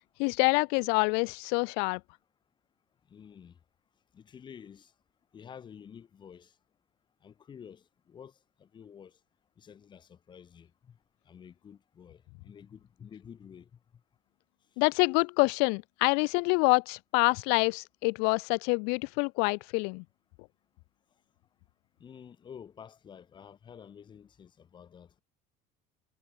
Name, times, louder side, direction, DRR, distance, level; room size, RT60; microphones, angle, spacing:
voice 1, 0.2-2.0 14.8-20.0, left 36 dB, 80° left, 0.6 m, -26 dB
voice 2, 3.1-3.6 4.1-4.9 5.3-6.6 7.2-9.2 9.6-11.0 11.2-13.8 22.0-25.2, left 8 dB, 25° left, 4.8 m, -50 dB
cardioid pair, 160°, 17 cm